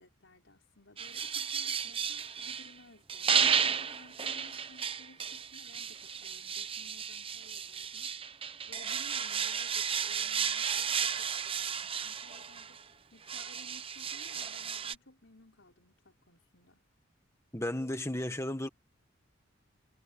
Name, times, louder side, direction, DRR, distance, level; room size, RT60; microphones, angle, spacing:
voice 1, 0.0-3.3 3.7-8.1 8.7-12.8 13.1-16.8, left 2 dB, 70° left, 5.8 m, -58 dB
sound 1, 1.0-2.7 3.1-12.8 13.3-15.0, right 7 dB, 30° right, 0.8 m, -33 dB
voice 2, 17.5-18.7, left 1 dB, 15° left, 1.4 m, -34 dB
head